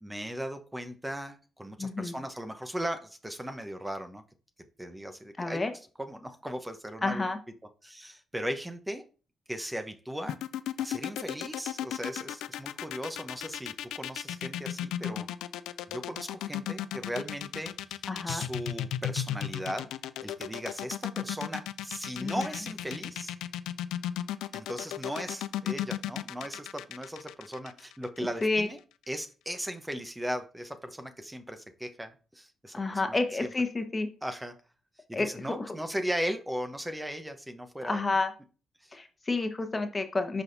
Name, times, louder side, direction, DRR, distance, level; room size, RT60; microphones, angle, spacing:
voice 1, 0.0-4.2 4.8-5.6 6.0-7.3 7.8-9.0 9.5-10.4 10.8-15.3 15.9-18.0 18.3-19.9 20.2-23.3 24.5-28.8 29.1-33.5 34.2-34.5 35.1-38.0 38.8-38.9, equal, 10° right, 7 dB, 0.9 m, -37 dB
voice 2, 1.8-2.1 5.4-5.7 7.0-7.4 18.1-18.4 22.2-22.5 28.4-28.7 32.7-34.1 35.1-35.7 37.8-38.3 38.9-40.4, left 3 dB, 30° left, 7 dB, 1.2 m, -30 dB
sound 1, 10.3-28.4, left 11 dB, 80° left, 0.3 m, -35 dB
11.5 x 4.1 x 2.6 m, 0.36 s
supercardioid pair, 50°, 0 cm